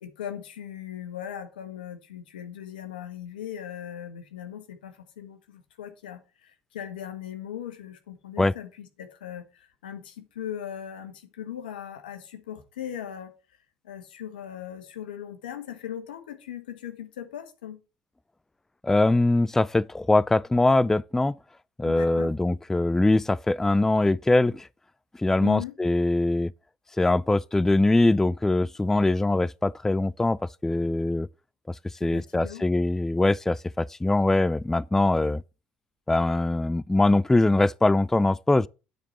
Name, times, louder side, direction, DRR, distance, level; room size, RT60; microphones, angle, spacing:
voice 1, 0.0-13.3 13.8-17.8 21.8-22.3 25.4-25.7 32.0-32.7, left 10 dB, 90° left, 1.2 m, -39 dB
voice 2, 18.8-21.4 21.8-24.7 25.2-26.5 27.0-31.3 32.0-35.4 36.1-38.7, left 2 dB, 10° left, 0.3 m, -22 dB
9.3 x 4.5 x 5.4 m
hypercardioid pair, 70°, 5 cm